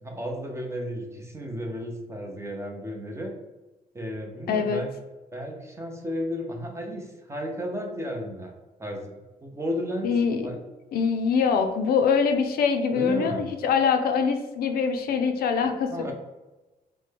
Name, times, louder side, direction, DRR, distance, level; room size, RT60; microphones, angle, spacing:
voice 1, 0.0-3.3 3.9-4.9 5.3-8.5 8.8-10.2 10.4-10.6 12.9-13.5 15.9-16.1, equal, 15° right, 2 dB, 0.6 m, -33 dB
voice 2, 4.5-4.8 10.0-10.4 10.9-16.1, left 6 dB, 70° left, 6 dB, 0.4 m, -24 dB
3.3 x 2.1 x 3.3 m, 1.1 s
cardioid pair, 100°, 16 cm